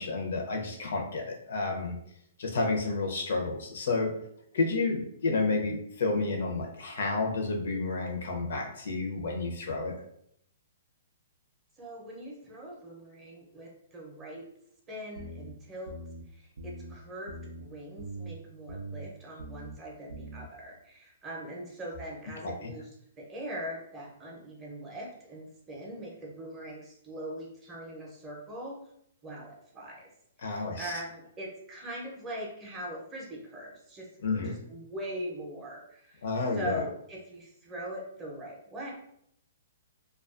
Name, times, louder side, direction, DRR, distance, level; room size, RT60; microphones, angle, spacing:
voice 1, 0.0-1.9 2.4-4.1 4.5-9.9 22.4-22.7 30.4-30.9 34.2-34.6 36.2-36.8, left 3 dB, 70° left, 1 dB, 0.6 m, -30 dB
voice 2, 11.8-14.4 14.9-15.9 16.3-22.9 23.2-28.8 29.2-30.1 30.4-34.1 34.4-36.3 36.5-38.9, right 1 dB, 15° right, -2 dB, 0.6 m, -41 dB
sound 1, 15.2-15.5 15.9-16.2 16.6-16.9 17.3-17.6 18.0-18.3 18.7-19.0 19.4-19.8 20.1-20.5, right 2 dB, 85° right, 0.3 m, -42 dB
2.3 x 2.2 x 2.4 m, 0.71 s
hypercardioid pair, 155°, 0 cm